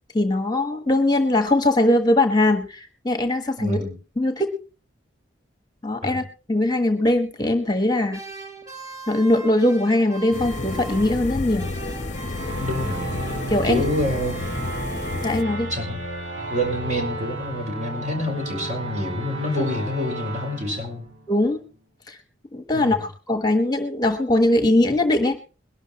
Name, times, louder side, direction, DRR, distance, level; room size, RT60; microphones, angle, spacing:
voice 1, 0.1-3.8 4.2-4.5 5.8-8.2 9.1-11.7 13.5-13.8 15.2-15.7 21.3-21.6 22.1-22.2 22.5-25.4, left 1 dB, 20° left, 7 dB, 1.3 m, -21 dB
voice 2, 3.6-3.9 6.0-6.2 12.6-13.1 13.7-14.4 15.7-16.0 16.5-21.1 22.7-23.0, left 1 dB, 40° right, 3 dB, 5.9 m, -27 dB
sound 1, 8.1-11.3 11.6-15.0, right 4 dB, 20° right, 4.9 m, -41 dB
sound 2, 10.3-15.4, left 2 dB, 40° left, 0.9 m, -31 dB
sound 3, 12.4-21.7, right 1 dB, 80° right, 4.9 m, -33 dB
22.0 x 12.0 x 3.1 m, 0.35 s
head